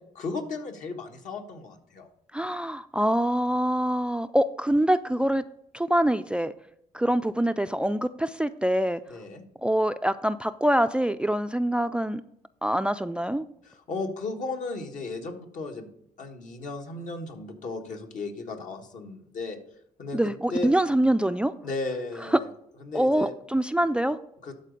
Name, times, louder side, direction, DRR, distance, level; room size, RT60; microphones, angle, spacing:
voice 1, 0.0-2.1 9.1-9.4 13.6-15.9 16.2-19.6 20.0-20.2 20.5-20.7 21.6-22.5 22.8-23.3 24.4-24.5, left 3 dB, 65° left, 3 dB, 1.4 m, -35 dB
voice 2, 2.3-5.4 5.7-6.5 6.9-9.0 9.6-12.2 12.6-13.4 20.1-21.5 22.3-22.4 22.9-24.2, right 1 dB, 5° right, 12 dB, 0.3 m, -24 dB
12.0 x 4.1 x 5.2 m, 0.74 s
cardioid pair, 75°, 14 cm